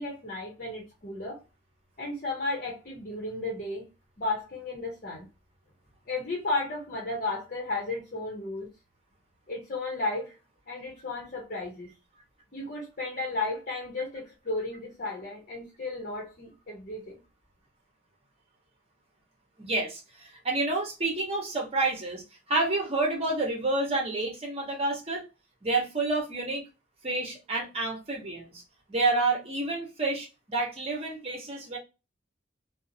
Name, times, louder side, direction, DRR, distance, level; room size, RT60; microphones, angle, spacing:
voice 1, 0.0-1.4 2.0-3.9 4.2-5.3 6.1-8.7 9.5-10.3 10.7-11.9 12.5-17.2, left 2 dB, 45° left, 0.8 m, -34 dB
voice 2, 19.6-22.2 22.5-25.2 25.6-26.6 27.0-28.6 28.9-31.8, right 2 dB, 35° right, 1.0 m, -29 dB
2.7 x 2.1 x 2.6 m
head